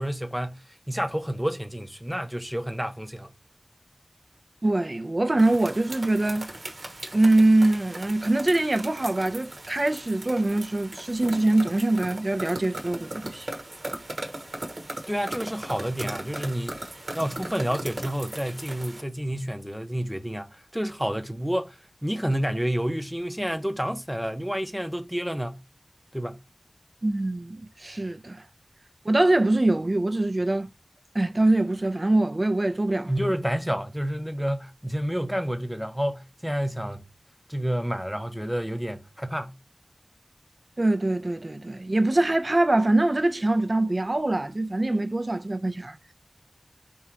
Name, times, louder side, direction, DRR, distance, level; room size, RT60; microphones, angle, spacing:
voice 1, 0.0-3.3 15.1-16.8 17.1-25.6 26.1-26.4 33.1-37.0 37.5-39.5, equal, ahead, 0.8 m, -29 dB
voice 2, 4.6-6.5 7.1-13.5 27.0-28.4 29.0-30.7 31.1-33.1 40.8-46.0, right 2 dB, 50° right, 0.6 m, -23 dB
sound 1, 5.4-19.0, right 2 dB, 75° right, 1.2 m, -38 dB
3.6 x 2.8 x 4.3 m
wide cardioid pair, 55°, 0 cm